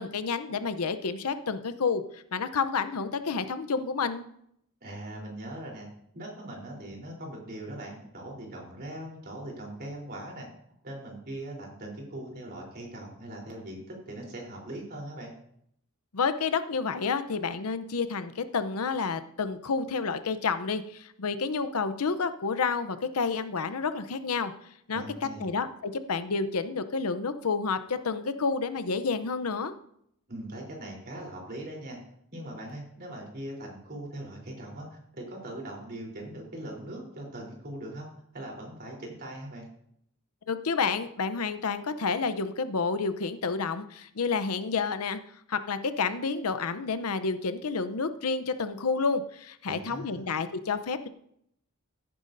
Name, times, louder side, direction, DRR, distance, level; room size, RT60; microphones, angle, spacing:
voice 1, 0.0-4.3 16.1-24.5 24.9-25.0 25.4-29.7 40.5-45.2 45.5-51.1, left 5 dB, 85° left, 12 dB, 0.7 m, -30 dB
voice 2, 4.8-5.9 6.1-10.5 10.8-15.3 24.9-25.5 30.3-32.0 32.3-34.9 35.1-38.1 38.3-39.7 49.7-50.2, right 1 dB, 45° right, -1 dB, 3.6 m, -40 dB
16.0 x 9.5 x 2.6 m, 0.71 s
head